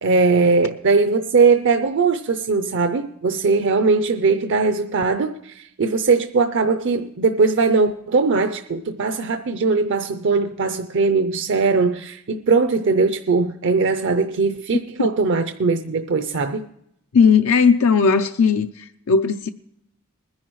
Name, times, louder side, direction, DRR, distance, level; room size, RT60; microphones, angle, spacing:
voice 1, 0.0-16.6, right 4 dB, 60° right, 0.5 m, -20 dB
voice 2, 17.1-19.5, left 5 dB, 70° left, 0.5 m, -17 dB
20.5 x 10.5 x 3.1 m
head